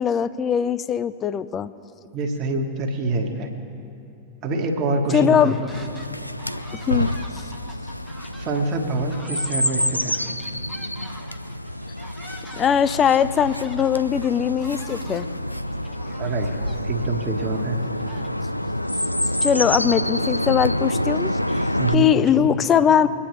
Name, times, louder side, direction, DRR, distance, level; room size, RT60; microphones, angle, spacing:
voice 1, 0.0-1.7 5.1-5.5 6.7-7.1 12.5-15.3 19.4-21.7 21.9-23.1, left 8 dB, 25° left, 14 dB, 0.5 m, -20 dB
voice 2, 2.1-3.5 4.4-5.7 8.3-10.2 16.2-16.5 16.8-17.8 21.8-22.5, right 2 dB, 40° right, 3 dB, 1.5 m, -25 dB
sound 1, 5.1-6.1 6.4-18.7, equal, 5° left, 1.0 m, -46 dB
Chirp tweet, 5.7-21.9, left 1 dB, 90° left, 0.3 m, -27 dB
24.0 x 9.8 x 3.2 m, 2.9 s
figure-of-eight pair, 90°, 0 cm